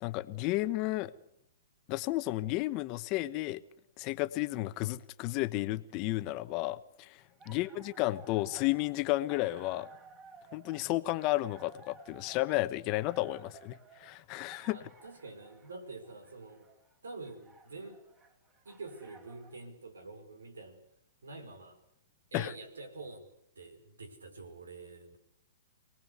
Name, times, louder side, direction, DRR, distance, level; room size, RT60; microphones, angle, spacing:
voice 1, 0.0-1.1 1.9-3.6 4.0-9.9 10.5-14.8 22.3-22.5, left 18 dB, 35° left, 1.1 m, -32 dB
sound 1, 7.2-19.6, right 4 dB, 25° right, 4.2 m, -57 dB
voice 2, 14.7-16.7 17.0-18.0 18.6-20.8 21.2-21.8 22.3-23.3 23.5-25.2, right 3 dB, 85° right, 5.0 m, -47 dB
26.5 x 19.0 x 8.2 m
hypercardioid pair, 130°, 0 cm